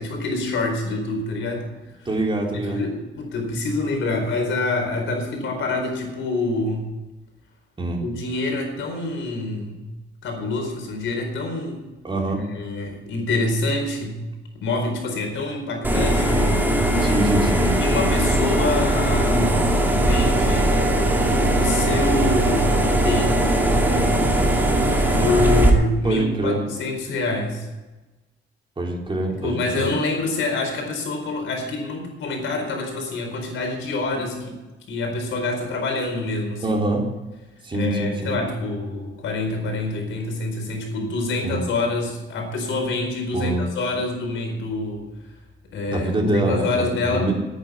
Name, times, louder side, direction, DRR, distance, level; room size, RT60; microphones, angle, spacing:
voice 1, 0.0-1.7 2.0-2.1 2.5-6.9 8.0-9.8 10.2-11.8 12.3-14.2 14.6-16.4 17.8-19.5 19.9-20.8 21.5-23.7 25.1-27.7 29.3-34.6 34.9-36.8 37.7-45.1 45.7-47.3, left 2 dB, 75° left, 3 dB, 4.4 m, -26 dB
voice 2, 2.1-2.8 7.8-8.0 12.0-12.4 17.0-17.7 26.0-26.6 28.8-29.9 36.6-37.0 37.6-38.4 41.4-41.6 43.3-43.7 45.8-47.3, right 2 dB, 25° right, 0 dB, 3.8 m, -24 dB
sound 1, 15.8-25.7, right 1 dB, 10° right, 2.6 m, -19 dB
9.7 x 9.4 x 9.4 m, 1.1 s
cardioid pair, 90°, 20 cm